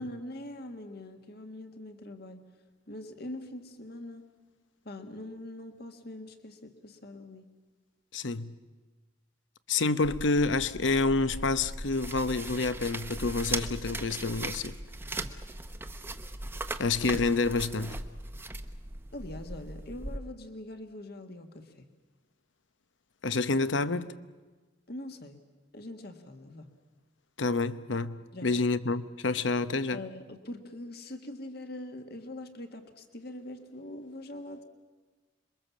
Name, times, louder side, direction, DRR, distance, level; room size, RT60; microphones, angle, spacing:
voice 1, 0.0-2.4 2.9-4.3 4.9-7.5 19.1-21.9 24.9-25.4 25.7-26.7 28.3-28.5 29.9-34.6, left 1 dB, 55° left, 1.8 m, -43 dB
voice 2, 8.1-8.5 9.7-14.7 16.8-18.0 23.2-24.2 27.4-30.0, left 3 dB, 75° left, 0.9 m, -28 dB
sound 1, 10.0-20.2, right 2 dB, 10° right, 0.8 m, -39 dB
27.0 x 22.5 x 7.3 m
head